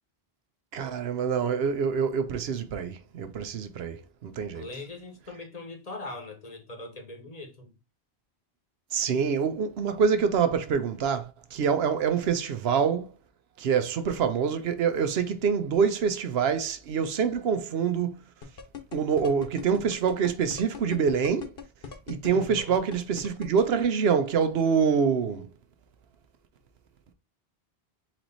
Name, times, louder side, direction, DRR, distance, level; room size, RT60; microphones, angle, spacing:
voice 1, 0.7-4.6 8.9-11.2 11.5-13.1 13.6-18.2 18.9-21.5 22.1-25.4, right 6 dB, 75° right, 0.9 m, -26 dB
voice 2, 4.5-7.7 22.3-22.8, left 2 dB, 40° left, 0.9 m, -41 dB
sound 1, 18.4-23.6, left 7 dB, 65° left, 1.1 m, -39 dB
4.2 x 3.0 x 3.9 m
omnidirectional pair, 1.1 m